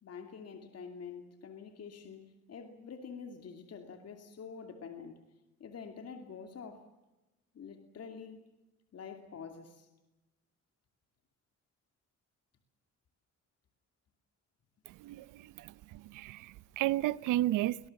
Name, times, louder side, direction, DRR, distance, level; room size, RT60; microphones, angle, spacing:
voice 1, 0.0-5.2 5.6-6.9 7.5-8.4 8.9-9.9, left 6 dB, 55° left, 2.6 m, -47 dB
voice 2, 14.9-17.8, right 15 dB, 90° right, 0.7 m, -33 dB
24.0 x 19.0 x 7.2 m
cardioid pair, 90°, 30 cm